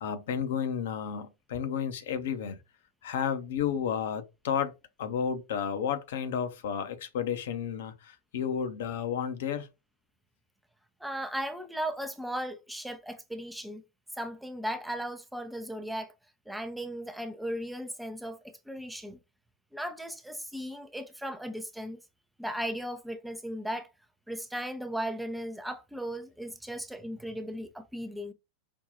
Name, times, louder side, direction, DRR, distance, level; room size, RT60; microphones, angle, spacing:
voice 1, 0.0-2.6 3.0-9.7, left 8 dB, 55° left, 0.7 m, -32 dB
voice 2, 11.0-13.8 14.1-16.1 16.5-19.2 19.7-22.0 22.4-23.9 24.3-28.3, equal, 5° right, 0.4 m, -36 dB
5.2 x 2.3 x 2.6 m
figure-of-eight pair, 90°, 0 cm